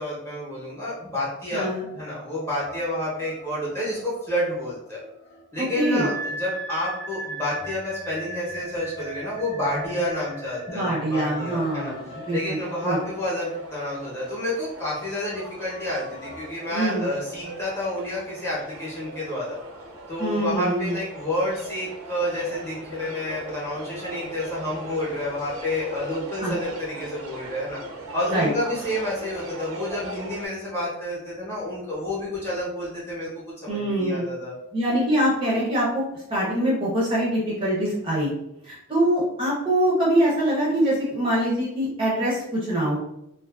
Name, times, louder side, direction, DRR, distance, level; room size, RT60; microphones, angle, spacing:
voice 1, 0.0-5.0 5.5-11.9 12.3-19.6 20.1-27.8 28.1-34.5 35.1-35.2, left 1 dB, 10° left, -7 dB, 0.7 m, -29 dB
voice 2, 1.5-1.8 5.6-6.1 10.7-12.6 12.8-13.0 16.7-17.1 20.2-20.9 26.4-26.5 28.3-28.5 33.7-34.2 34.7-36.0 36.3-38.3 38.6-43.0, right 1 dB, 25° right, -5 dB, 0.5 m, -24 dB
sound 1, 1.7-16.5, right 2 dB, 50° left, 0.5 m, -39 dB
sound 2, 11.0-30.5, right 1 dB, 85° right, 0.5 m, -40 dB
2.4 x 2.4 x 2.3 m, 0.84 s
head